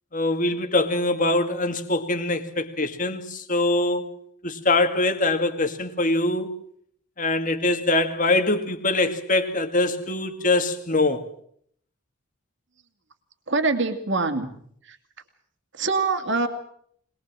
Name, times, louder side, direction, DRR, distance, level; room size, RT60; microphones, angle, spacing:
voice 1, 0.1-4.1 4.4-6.5 7.2-11.2, left 2 dB, 35° left, 2.2 m, -23 dB
voice 2, 13.5-14.5 15.8-16.5, right 3 dB, 55° right, 2.5 m, -23 dB
23.0 x 21.0 x 7.6 m
head